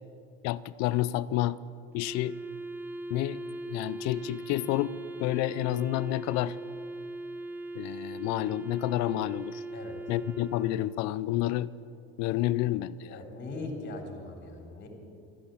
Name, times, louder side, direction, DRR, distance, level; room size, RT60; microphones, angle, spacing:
voice 1, 0.4-1.6 1.9-2.4 3.1-3.4 3.7-4.9 5.2-6.6 7.7-9.6 10.1-11.7 12.2-13.2, left 15 dB, 55° left, 17 dB, 0.5 m, -29 dB
Wind instrument woodwind instrument, 2.0-11.3, right 2 dB, 5° right, 0.8 m, -40 dB
voice 2, 13.1-14.9, left 2 dB, 35° left, 2 dB, 3.8 m, -40 dB
13.0 x 13.0 x 8.4 m, 2.4 s
supercardioid pair, 110°, 33 cm